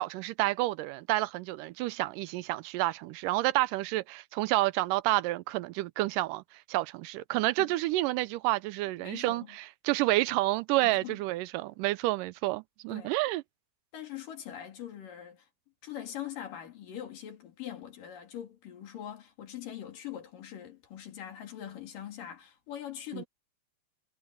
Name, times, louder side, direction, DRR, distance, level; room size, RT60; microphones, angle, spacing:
voice 1, 0.0-6.4 6.7-13.4 23.1-23.2, right 18 dB, 85° right, 2.1 m, -29 dB
voice 2, 9.0-9.6 10.8-11.2 12.9-13.1 13.9-15.5 15.8-23.3, left 10 dB, 80° left, 4.2 m, -42 dB
omnidirectional pair, 3.8 m